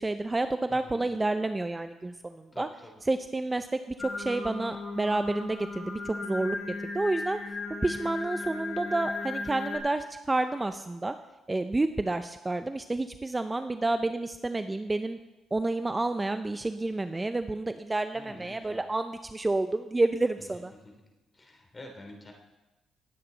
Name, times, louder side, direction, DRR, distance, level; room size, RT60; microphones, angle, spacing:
voice 1, 0.0-2.7 3.1-6.6 6.9-7.4 7.8-11.1 11.5-15.2 15.5-20.7, right 2 dB, 20° right, 9 dB, 0.5 m, -29 dB
voice 2, 0.7-1.1 2.5-3.0 18.1-18.8 20.5-20.9 21.3-22.3, left 1 dB, 25° left, 3 dB, 2.9 m, -47 dB
Singing, 4.0-9.8, left 3 dB, 45° left, 3.8 m, -36 dB
19.0 x 8.8 x 3.9 m, 1.1 s
cardioid pair, 90°, 0 cm